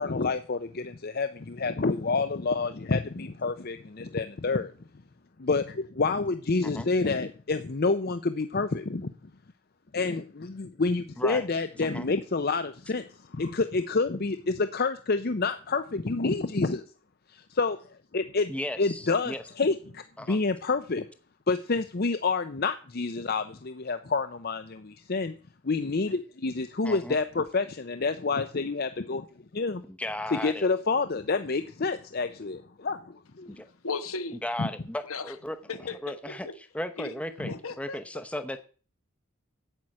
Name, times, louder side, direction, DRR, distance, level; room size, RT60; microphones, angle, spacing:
voice 1, 0.0-4.7 5.4-9.1 9.9-16.8 17.3-17.8 18.1-18.5 18.8-21.0 21.5-25.3 25.6-29.3 29.5-29.8 30.3-33.5 34.6-34.7 37.4-37.5, left 3 dB, 45° left, 10 dB, 0.6 m, -28 dB
voice 2, 18.5-19.4 20.2-20.4 26.8-27.2 29.9-30.7 33.5-33.7 34.4-35.6 36.0-36.5 36.7-38.6, left 1 dB, 5° left, 8 dB, 0.8 m, -35 dB
voice 3, 33.8-34.4 35.0-35.3 35.7-36.3 37.0-37.1 37.5-38.0, left 4 dB, 80° left, 10 dB, 1.3 m, -35 dB
9.0 x 7.8 x 8.6 m, 0.39 s
head